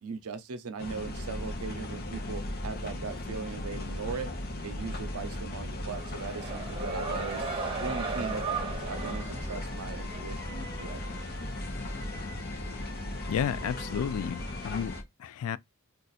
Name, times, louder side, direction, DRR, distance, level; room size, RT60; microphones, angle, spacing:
voice 1, 0.0-4.3 4.6-7.4 7.8-11.2, right 5 dB, 75° right, 0.6 m, -39 dB
sound 1, 0.8-15.0, left 1 dB, 45° left, 0.7 m, -37 dB
sound 2, 5.8-10.3, right 4 dB, 25° right, 0.9 m, -36 dB
sound 3, 8.9-15.0, left 1 dB, 10° left, 0.7 m, -45 dB
voice 2, 13.3-15.6, left 8 dB, 75° left, 0.3 m, -32 dB
2.5 x 2.4 x 4.0 m
head